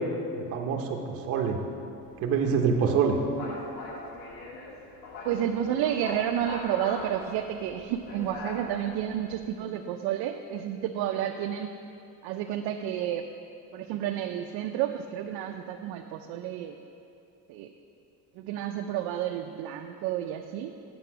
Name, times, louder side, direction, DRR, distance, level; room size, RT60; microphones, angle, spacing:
voice 1, 0.3-1.6 2.2-3.2, right 6 dB, 40° right, 1 dB, 0.7 m, -26 dB
sound 1, 2.0-9.5, left 2 dB, 65° left, 1.3 m, -42 dB
voice 2, 5.2-11.7 12.2-13.3 13.7-16.7 17.5-17.7 18.4-20.7, right 10 dB, 85° right, 4 dB, 0.5 m, -31 dB
7.8 x 6.9 x 5.6 m, 2.6 s
cardioid pair, 175°, 38 cm